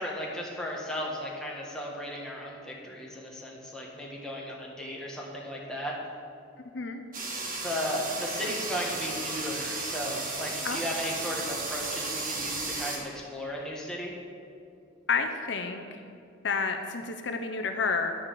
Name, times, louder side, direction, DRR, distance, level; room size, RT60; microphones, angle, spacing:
voice 1, 0.0-6.0 7.6-14.1, equal, 5° left, -3 dB, 1.5 m, -35 dB
sound 1, 7.1-13.0, right 3 dB, 45° right, 1.5 m, -34 dB
voice 2, 15.1-16.0 16.4-18.1, left 4 dB, 65° left, 6 dB, 0.7 m, -30 dB
9.8 x 6.3 x 7.6 m, 2.4 s
head